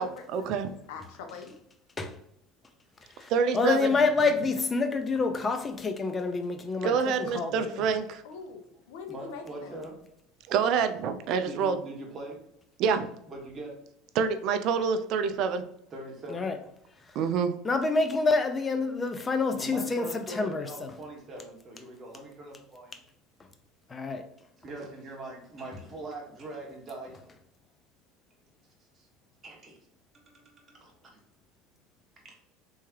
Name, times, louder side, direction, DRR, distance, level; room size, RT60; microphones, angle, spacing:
voice 1, 0.0-0.7 3.3-4.0 6.8-8.2 10.5-11.8 12.8-13.1 14.2-15.6 17.1-17.5, right 6 dB, 60° right, 0.4 m, -27 dB
voice 2, 0.5-1.6 8.2-9.7, left 5 dB, 80° left, 0.7 m, -43 dB
voice 3, 3.2-6.9 7.2-7.7 16.3-16.5 17.6-20.1 20.4-20.9 23.9-24.2, left 4 dB, 20° left, 0.5 m, -27 dB
voice 4, 9.1-10.0 11.4-12.4 13.3-13.8 15.9-16.6 19.6-23.0 24.6-27.3 28.9-29.1 29.4-29.8 30.1-31.2 32.2-32.3, right 2 dB, 30° right, 1.3 m, -42 dB
3.5 x 3.1 x 2.9 m
supercardioid pair, 115°, 0 cm